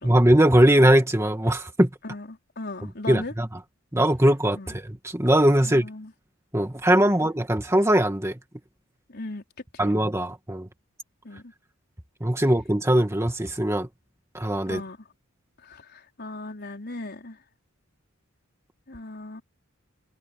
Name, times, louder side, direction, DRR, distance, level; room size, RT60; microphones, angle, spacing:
voice 1, 0.0-1.9 3.1-3.5 3.9-5.9 6.5-8.4 9.8-10.7 12.2-13.9 14.3-14.8, right 1 dB, 15° right, 2.0 m, -20 dB
voice 2, 2.0-3.3 4.5-4.7 5.6-6.1 7.0-7.3 9.1-9.4 9.7-10.0 11.2-11.5 14.6-15.1 15.6-17.4 18.9-19.4, left 2 dB, 50° left, 4.6 m, -38 dB
head